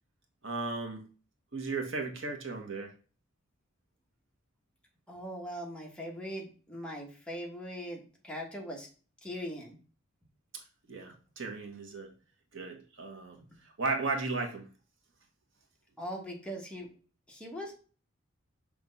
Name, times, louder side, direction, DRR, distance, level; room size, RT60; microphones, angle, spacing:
voice 1, 0.4-1.0 1.5-2.9 10.5-10.6 10.9-12.1 12.5-13.4 13.8-14.7, right 3 dB, 65° right, 3 dB, 1.4 m, -35 dB
voice 2, 5.1-8.9 9.2-9.8 16.0-16.9 17.3-17.8, equal, 5° left, -1 dB, 1.3 m, -40 dB
6.1 x 3.4 x 5.3 m, 0.37 s
head